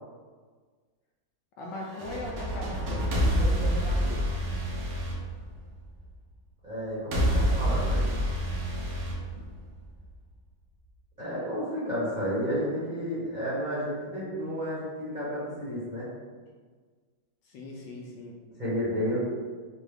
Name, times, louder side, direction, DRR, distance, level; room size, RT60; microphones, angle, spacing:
voice 1, 1.6-4.2 11.2-11.5 17.4-18.4, left 2 dB, 75° left, -1 dB, 1.1 m, -39 dB
sound 1, 1.8-6.0 7.1-10.0, equal, 70° right, 0.7 m, -28 dB
voice 2, 6.6-8.0 11.2-16.1 18.6-19.2, equal, 30° right, -10 dB, 0.9 m, -31 dB
4.3 x 2.4 x 3.4 m, 1.5 s
omnidirectional pair, 2.1 m